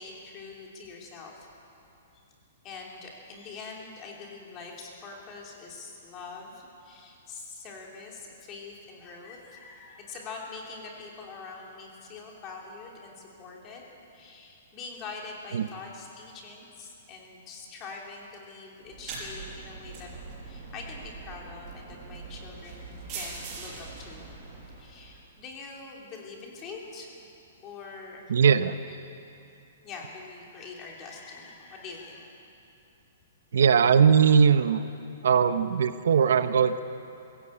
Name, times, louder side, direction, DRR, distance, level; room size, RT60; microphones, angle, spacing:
voice 1, 0.0-1.5 2.6-13.8 14.1-20.1 20.4-24.4 24.8-27.3 27.6-28.3 28.9-29.0 29.8-32.3, left 4 dB, 20° left, -1 dB, 3.1 m, -44 dB
sound 1, 18.8-25.2, right 4 dB, 25° right, 5.5 m, -42 dB
voice 2, 28.3-28.8 33.5-34.8 35.2-36.8, right 6 dB, 75° right, 11 dB, 0.9 m, -20 dB
22.0 x 16.0 x 8.7 m, 2.7 s
hypercardioid pair, 175°, 0 cm